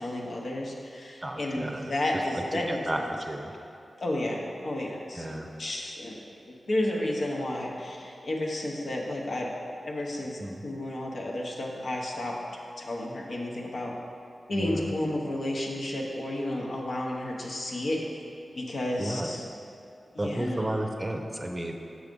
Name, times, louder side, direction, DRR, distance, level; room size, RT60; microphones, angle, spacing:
voice 1, 0.0-2.8 4.0-6.2 6.5-9.5 9.8-12.4 12.8-13.9 14.5-18.0 18.5-19.4 20.1-20.7, left 1 dB, 70° left, -2 dB, 1.0 m, -32 dB
voice 2, 1.2-1.9 2.7-3.5 5.2-5.5 10.4-10.6 14.6-14.9 19.0-19.3 20.2-21.8, right 1 dB, 20° right, 3 dB, 0.6 m, -32 dB
6.4 x 4.8 x 5.3 m, 2.6 s
cardioid pair, 60°, 0 cm